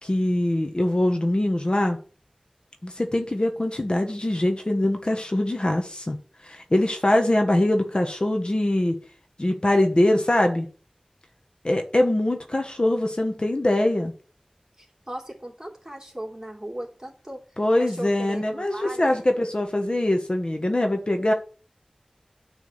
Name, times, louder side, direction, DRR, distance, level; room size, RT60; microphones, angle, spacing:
voice 1, 0.0-2.0 2.8-6.2 6.4-8.9 9.4-10.7 11.6-14.1 17.6-21.3, left 1 dB, 40° left, 4 dB, 1.1 m, -23 dB
voice 2, 14.8-17.4 17.8-19.3, right 1 dB, 25° right, -2 dB, 2.9 m, -37 dB
9.6 x 3.5 x 7.0 m, 0.39 s
wide cardioid pair, 55°, 2 cm